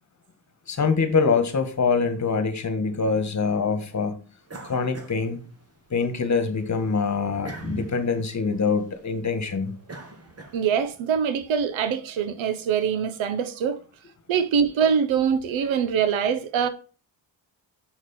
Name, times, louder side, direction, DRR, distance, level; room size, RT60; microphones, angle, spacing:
voice 1, 0.7-4.2 4.6-5.4 5.9-9.7, left 5 dB, 40° left, 1.6 m, -24 dB
sound 1, 4.5-6.0 6.4-11.0, right 2 dB, 30° right, 1.8 m, -42 dB
voice 2, 10.5-13.8 14.3-16.7, right 7 dB, 85° right, 1.0 m, -23 dB
6.5 x 6.1 x 4.4 m
cardioid pair, 90°, 45 cm